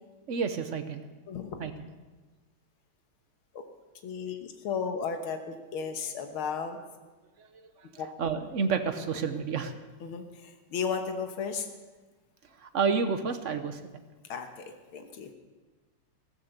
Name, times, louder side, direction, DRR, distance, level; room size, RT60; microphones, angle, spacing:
voice 1, 0.3-1.0 1.6-1.9 7.4-7.7 7.9-9.7 12.6-13.8, right 5 dB, 45° right, 8 dB, 1.0 m, -30 dB
voice 2, 1.3-1.6 3.5-3.6 4.0-6.8 8.0-8.1 10.0-11.7 14.3-14.7 14.9-15.3, left 6 dB, 80° left, 6 dB, 2.1 m, -34 dB
15.0 x 14.5 x 6.7 m, 1.2 s
omnidirectional pair, 2.3 m